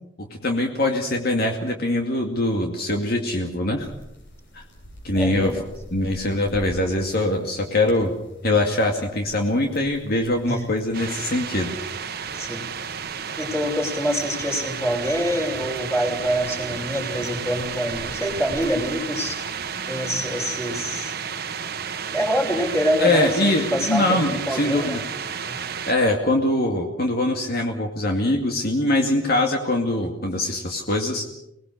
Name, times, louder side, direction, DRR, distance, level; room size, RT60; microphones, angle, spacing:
voice 1, 0.2-3.9 4.5-4.6 5.0-5.6 5.9-8.1 8.4-11.7 23.0-25.0 25.9-31.3, left 1 dB, 55° left, 2 dB, 2.4 m, -23 dB
sound 1, 3.8-20.3, equal, 80° left, 7.7 m, -46 dB
voice 2, 5.1-5.6 10.5-10.7 12.3-12.7 13.4-19.4 19.9-21.1 22.1-25.1 25.3-25.6, equal, 15° left, 2 dB, 5.7 m, -26 dB
sound 2, 10.9-25.9, right 7 dB, 55° right, 1.3 m, -32 dB
26.5 x 20.0 x 6.5 m, 0.83 s
head